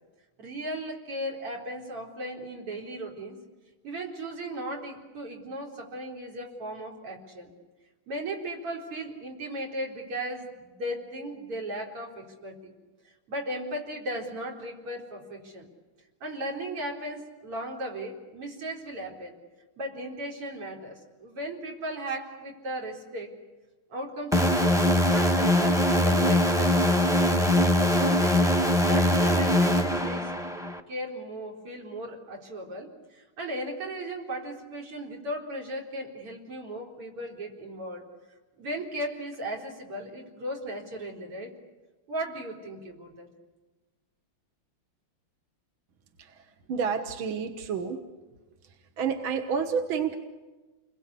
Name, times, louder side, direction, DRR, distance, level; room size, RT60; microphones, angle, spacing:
voice 1, 0.4-3.4 3.8-7.5 8.1-12.7 13.3-15.7 16.2-19.3 19.8-23.3 23.9-24.8 25.1-27.5 28.0-30.3 30.9-38.0 38.6-41.5 42.1-43.3, right 1 dB, 85° right, 0 dB, 4.9 m, -36 dB
sound 1, 24.3-30.8, left 1 dB, ahead, 0.8 m, -22 dB
voice 2, 46.2-48.0 48.6-50.2, right 6 dB, 65° right, 6 dB, 2.1 m, -30 dB
30.0 x 22.0 x 8.3 m, 1.2 s
omnidirectional pair, 2.4 m